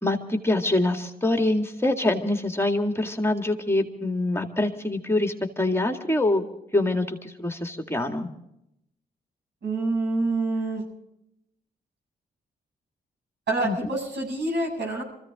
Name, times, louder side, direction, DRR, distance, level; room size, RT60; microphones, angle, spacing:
voice 1, 0.0-6.4 6.7-8.3 13.6-13.7, left 2 dB, 15° left, 4 dB, 2.1 m, -25 dB
voice 2, 9.6-10.8 13.5-15.0, right 2 dB, 75° right, 1 dB, 7.3 m, -26 dB
24.5 x 15.5 x 3.7 m, 0.80 s
cardioid pair, 55°, 18 cm